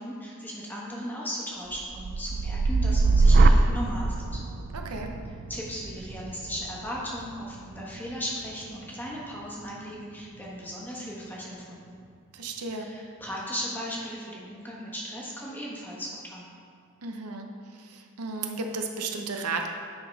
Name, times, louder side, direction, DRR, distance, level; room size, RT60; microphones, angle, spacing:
voice 1, 0.0-4.4 5.5-12.0 12.8-16.5, equal, 10° left, -5 dB, 1.3 m, -37 dB
sound 1, 1.7-9.8 10.2-10.7, right 3 dB, 45° right, 0.3 m, -25 dB
voice 2, 4.7-5.1 12.3-12.9 17.0-17.5 17.8-19.7, right 3 dB, 85° right, 3 dB, 0.8 m, -33 dB
9.5 x 4.0 x 5.3 m, 2.2 s
head